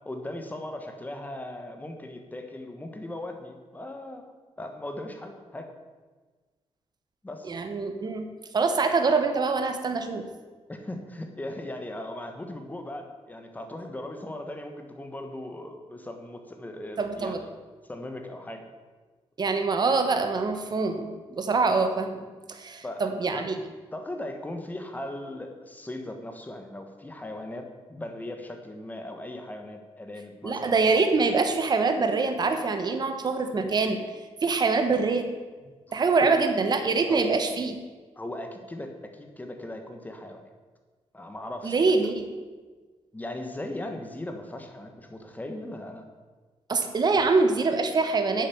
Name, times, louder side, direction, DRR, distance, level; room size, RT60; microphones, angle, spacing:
voice 1, 0.0-4.3 4.6-5.7 7.2-7.5 10.7-17.3 17.9-18.6 22.8-23.5 23.9-30.8 35.9-36.4 37.1-37.4 38.1-40.5 41.1-41.9 43.1-46.0, left 1 dB, 15° left, 5 dB, 1.4 m, -38 dB
voice 2, 7.4-10.3 17.0-17.4 19.4-23.6 30.4-34.0 34.4-35.3 35.9-37.8 41.6-42.3 46.7-48.5, right 4 dB, 40° right, 7 dB, 1.2 m, -25 dB
9.2 x 7.2 x 7.0 m, 1.4 s
cardioid pair, 115°, 11 cm